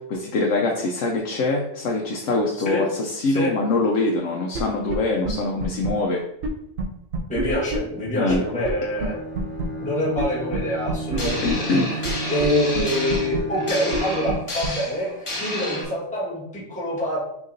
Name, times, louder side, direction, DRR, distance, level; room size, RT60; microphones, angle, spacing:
voice 1, 0.0-6.2 8.2-8.4 11.4-11.9, left 2 dB, 85° left, 0 dB, 1.0 m, -24 dB
voice 2, 3.3-3.6 7.3-9.2 9.8-11.7 12.0-17.2, left 1 dB, 5° left, -7 dB, 1.3 m, -26 dB
sound 1, 4.5-4.6 4.9-5.0 5.3-5.4 5.6-5.9 6.4-6.5 6.8-6.9 7.1-7.8 8.3-8.4 8.6-8.7 9.0-9.1 9.4-9.6 10.2-10.3 10.5-10.6 10.9-11.5 12.0-12.1 12.4-12.5 12.8-12.9 13.1-13.4 13.9-14.0 14.3-14.4 14.6-14.7, right 4 dB, 70° right, 1.0 m, -27 dB
Bowed string instrument, 8.7-14.7, right 2 dB, 60° left, 1.1 m, -33 dB
sound 2, 11.2-15.8, left 1 dB, 30° left, 0.7 m, -31 dB
6.4 x 2.9 x 2.6 m, 0.76 s
omnidirectional pair, 1.2 m